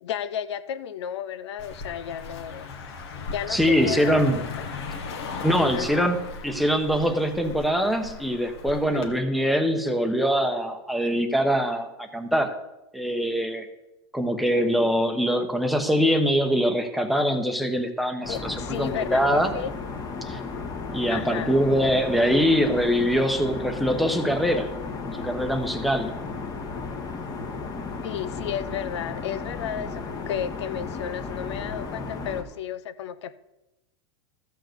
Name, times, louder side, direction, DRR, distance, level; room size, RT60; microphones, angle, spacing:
voice 1, 0.0-2.7 3.3-4.1 5.7-6.1 8.9-9.1 18.3-19.2 19.5-19.7 21.1-21.6 28.0-33.3, left 9 dB, 90° left, 0.7 m, -33 dB
Car passing by, 1.6-9.1, left 4 dB, 70° left, 1.8 m, -37 dB
voice 2, 3.5-4.4 5.4-6.2 6.4-12.5 12.9-13.7 14.1-19.5 20.2-20.4 20.9-24.7 25.2-26.1, equal, ahead, 0.9 m, -23 dB
sound 1, 18.2-32.4, left 4 dB, 25° left, 1.3 m, -34 dB
14.0 x 4.7 x 7.8 m
supercardioid pair, 145°, 14 cm